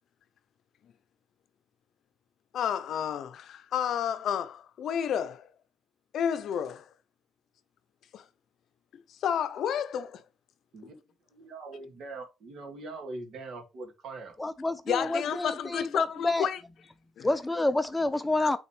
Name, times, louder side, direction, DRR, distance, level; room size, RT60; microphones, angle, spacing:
voice 1, 2.5-5.4 6.1-6.9 8.1-8.2 9.2-10.2 14.9-16.6 17.2-17.3 18.4-18.6, left 8 dB, 65° left, 0.6 m, -30 dB
voice 2, 11.3-14.3, right 3 dB, 60° right, 2.2 m, -42 dB
voice 3, 14.4-16.5 17.2-18.6, left 2 dB, 10° left, 0.4 m, -28 dB
8.6 x 4.0 x 3.2 m
cardioid pair, 110°, 0 cm